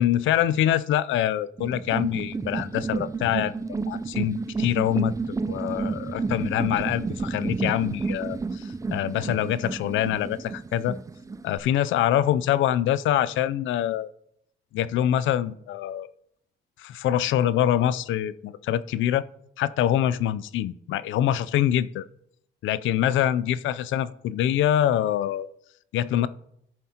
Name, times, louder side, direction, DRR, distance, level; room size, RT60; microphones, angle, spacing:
voice 1, 0.0-3.6 3.9-11.0 11.4-14.1 14.7-16.1 16.8-19.2 19.6-22.1 22.6-25.5 25.9-26.3, left 11 dB, 80° left, 16 dB, 0.4 m, -25 dB
sound 1, 1.6-11.6, right 4 dB, 15° right, 0.4 m, -31 dB
13.0 x 7.3 x 2.9 m, 0.73 s
cardioid pair, 90°, 20 cm